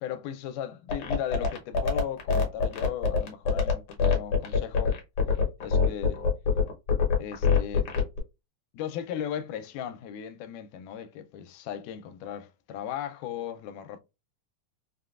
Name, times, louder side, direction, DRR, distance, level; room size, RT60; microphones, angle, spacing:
voice 1, 0.0-5.0 5.6-6.2 7.2-7.9 8.7-14.0, left 9 dB, 85° left, 2.1 m, -37 dB
sound 1, 0.9-8.2, left 5 dB, 65° left, 1.5 m, -24 dB
5.2 x 2.2 x 2.3 m
omnidirectional pair, 3.7 m